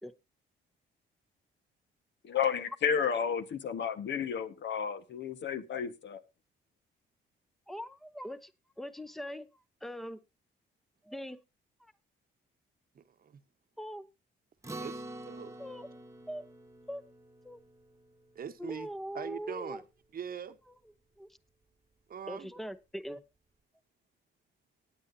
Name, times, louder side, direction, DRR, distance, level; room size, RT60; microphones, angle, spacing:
voice 1, 2.2-6.2, left 7 dB, 65° left, 1.3 m, -32 dB
voice 2, 7.7-8.5 8.8-10.2 11.0-11.4 11.8-11.9 13.8-14.1 15.6-15.9 16.3-16.5 16.9-17.0 17.4-17.6 18.6-19.8 21.2-21.3 22.3-23.2, equal, ahead, 0.8 m, -41 dB
voice 3, 12.9-13.4 14.8-15.6 18.3-18.9 19.1-19.8 20.1-20.6 22.1-22.5, right 7 dB, 45° right, 1.0 m, -42 dB
Acoustic guitar, 14.6-19.3, right 2 dB, 15° right, 1.2 m, -47 dB
19.0 x 8.5 x 2.6 m
cardioid pair, 90°, 20 cm